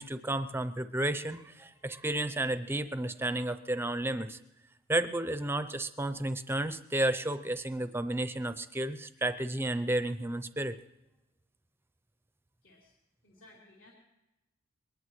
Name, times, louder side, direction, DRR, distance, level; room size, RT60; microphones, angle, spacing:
voice 1, 0.0-4.4 4.9-10.8, right 1 dB, 10° right, 12 dB, 0.5 m, -32 dB
voice 2, 12.6-12.9 13.2-13.9, left 2 dB, 65° left, -5 dB, 3.2 m, -58 dB
22.5 x 19.5 x 3.2 m, 0.96 s
head